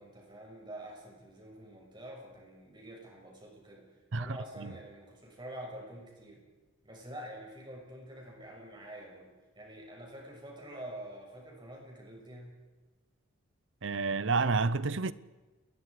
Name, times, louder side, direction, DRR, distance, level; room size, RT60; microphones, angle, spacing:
voice 1, 0.0-6.4 6.8-9.3 9.5-12.6, right 1 dB, 20° right, 6.5 m, -47 dB
voice 2, 4.1-4.7 13.8-15.1, right 4 dB, 60° right, 0.7 m, -30 dB
29.5 x 21.0 x 5.0 m
head